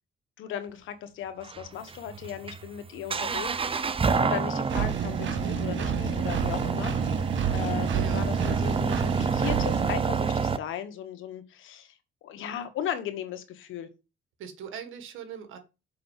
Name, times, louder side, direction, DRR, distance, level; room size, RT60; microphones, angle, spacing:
voice 1, 0.4-3.5 4.2-6.9 7.5-13.9, left 10 dB, 85° left, 9 dB, 1.4 m, -37 dB
sound 1, 1.4-10.6, right 5 dB, 25° right, 0.7 m, -28 dB
Engine, 4.7-9.9, right 8 dB, 70° right, 1.4 m, -31 dB
voice 2, 7.9-8.2 14.4-15.6, right 8 dB, 85° right, 8 dB, 1.7 m, -40 dB
6.6 x 5.3 x 5.6 m, 0.28 s
cardioid pair, 90°, 20 cm